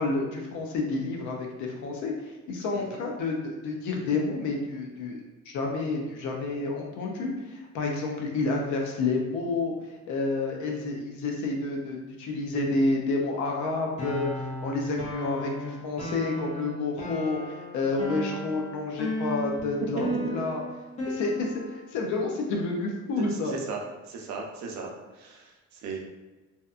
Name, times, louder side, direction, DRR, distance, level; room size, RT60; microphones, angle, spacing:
voice 1, 0.0-5.2 5.5-9.7 10.1-20.6 21.1-23.5, left 3 dB, 80° left, 1 dB, 0.5 m, -29 dB
sound 1, 14.0-21.9, equal, 25° left, 0.5 m, -35 dB
voice 2, 23.4-23.8 24.1-26.0, right 4 dB, 70° right, 0 dB, 0.5 m, -37 dB
2.7 x 2.2 x 2.4 m, 1.2 s
cardioid pair, 170°, 29 cm